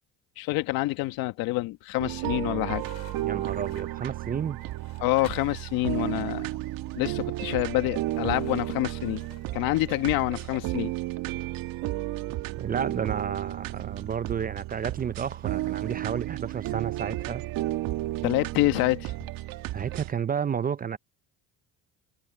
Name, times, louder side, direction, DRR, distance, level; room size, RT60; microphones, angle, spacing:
voice 1, 0.4-2.8 5.0-6.5 6.9-9.2 9.5-10.9 18.2-19.1, left 19 dB, 80° left, 1.6 m, -27 dB
sound 1, 0.9-1.5 1.9-5.6 8.1-10.1, left 9 dB, 45° left, 4.5 m, -53 dB
sound 2, 2.0-20.1, right 16 dB, 70° right, 1.5 m, -33 dB
voice 2, 3.2-4.6 12.6-17.4 19.7-21.0, right 7 dB, 25° right, 0.5 m, -31 dB
supercardioid pair, 95°, 35 cm